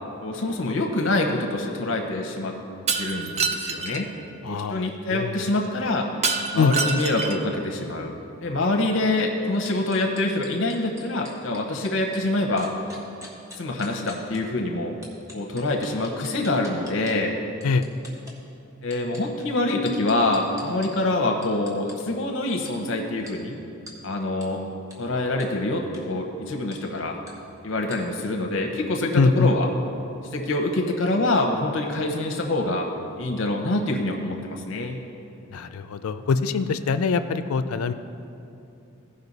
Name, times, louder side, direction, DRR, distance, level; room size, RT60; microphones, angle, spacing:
voice 1, 0.2-2.5 3.0-4.1 4.5-6.1 6.5-8.1 8.4-12.7 13.6-15.0 15.3-17.3 18.8-23.5 24.0-24.6 25.0-27.2 27.6-29.7 30.3-32.9 33.2-35.0, left 2 dB, 60° left, 2 dB, 0.8 m, -25 dB
Shatter, 2.9-4.0 6.2-7.5, right 4 dB, 30° right, 0.4 m, -26 dB
voice 2, 4.4-5.4 6.6-6.7 17.6-17.8 29.1-29.5 35.5-37.9, left 4 dB, 85° left, 10 dB, 0.4 m, -23 dB
sound 1, 9.7-12.2 12.6-14.4 15.0-17.1 17.6-18.3 18.8-20.9 21.4-21.9 22.7-22.8 23.3-23.4 23.9-24.0 24.4-24.5 24.9-25.0 25.4-25.5 25.8-26.0 26.7-26.8 27.3-27.4 27.9-28.0, left 1 dB, 15° right, 1.2 m, -44 dB
16.0 x 5.3 x 4.0 m, 2.8 s
head